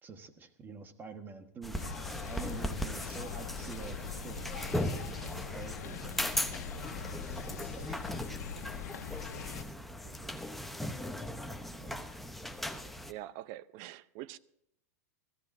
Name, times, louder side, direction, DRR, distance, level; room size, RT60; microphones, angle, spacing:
voice 1, 0.0-8.1 11.7-12.0, right 4 dB, 20° right, 1.4 m, -48 dB
sound 1, 1.6-13.1, left 1 dB, ahead, 0.9 m, -38 dB
sound 2, 1.7-9.6, left 8 dB, 75° left, 1.2 m, -43 dB
voice 2, 9.3-9.6 10.0-10.4 13.1-14.4, right 14 dB, 50° right, 0.7 m, -46 dB
22.0 x 15.0 x 2.7 m
supercardioid pair, 130°, 9 cm